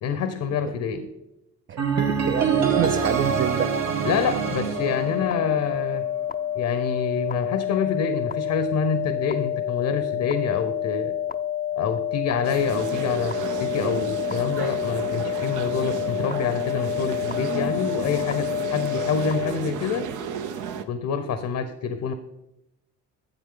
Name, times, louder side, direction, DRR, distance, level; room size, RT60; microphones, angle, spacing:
voice 1, 0.0-1.1 4.0-6.0 6.5-11.1 11.8-20.0 20.9-22.1, left 6 dB, 80° left, 9 dB, 0.9 m, -27 dB
voice 2, 1.7-3.8, right 10 dB, 40° right, 9 dB, 0.4 m, -28 dB
sound 1, 1.8-5.8, right 6 dB, 65° right, 1.4 m, -25 dB
sound 2, 4.8-19.5, left 11 dB, 30° left, 0.4 m, -28 dB
sound 3, 12.4-20.8, right 7 dB, 85° right, 0.8 m, -33 dB
11.0 x 7.6 x 3.8 m, 0.90 s
cardioid pair, 90°, 30 cm